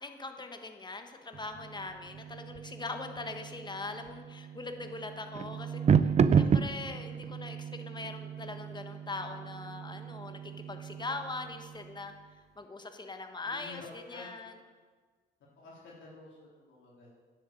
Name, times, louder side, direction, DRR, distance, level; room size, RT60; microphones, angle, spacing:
voice 1, 0.0-12.1 12.6-14.5, left 3 dB, 20° left, 6 dB, 1.4 m, -41 dB
sound 1, 1.3-12.1, right 7 dB, 35° right, 0.5 m, -32 dB
voice 2, 13.4-14.4 15.6-17.1, left 3 dB, 75° left, -5 dB, 3.5 m, -49 dB
10.0 x 7.8 x 8.3 m, 1.5 s
cardioid pair, 90°, 20 cm